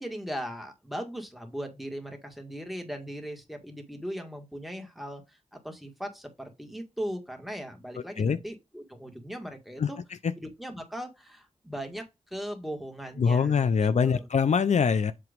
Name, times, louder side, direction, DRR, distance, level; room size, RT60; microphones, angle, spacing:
voice 1, 0.0-10.0 10.4-13.7 14.0-14.3, equal, ahead, 1.9 m, -38 dB
voice 2, 13.2-15.1, left 6 dB, 70° left, 0.5 m, -23 dB
7.8 x 3.0 x 5.1 m
wide cardioid pair, 65°, 12 cm